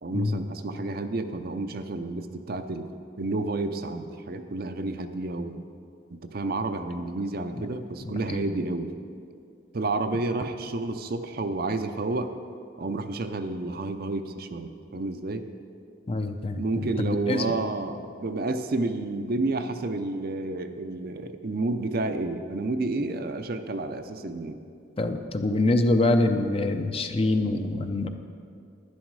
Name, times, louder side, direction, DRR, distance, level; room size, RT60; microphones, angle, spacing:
voice 1, 0.0-2.9 3.2-5.6 6.1-8.9 9.7-12.3 12.8-15.5 16.6-24.6, right 2 dB, 50° right, 8 dB, 0.6 m, -30 dB
voice 2, 8.0-8.4 16.1-17.5 25.0-28.1, left 2 dB, 30° left, 7 dB, 0.5 m, -25 dB
11.5 x 10.5 x 4.7 m, 2.4 s
head